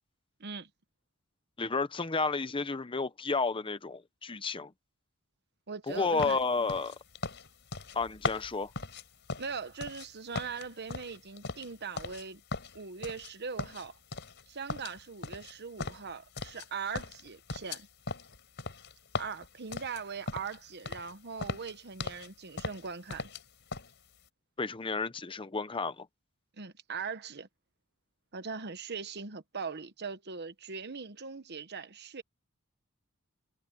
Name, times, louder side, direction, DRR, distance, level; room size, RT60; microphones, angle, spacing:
voice 1, 1.6-4.7 5.9-6.9 7.9-8.7 24.6-26.1, left 4 dB, 25° left, 0.7 m, -31 dB
voice 2, 5.7-6.4 9.4-12.4 12.7-14.0 14.5-17.9 19.2-23.3 26.6-27.5 28.3-32.2, right 5 dB, 50° right, 1.1 m, -40 dB
sound 1, 6.2-10.1 10.3-12.2 12.5-13.3 13.6-14.4 14.7-16.7 16.9-20.6 20.9-21.1 21.4-22.3 22.6-23.4 23.7-23.9, left 3 dB, 55° left, 4.8 m, -39 dB
head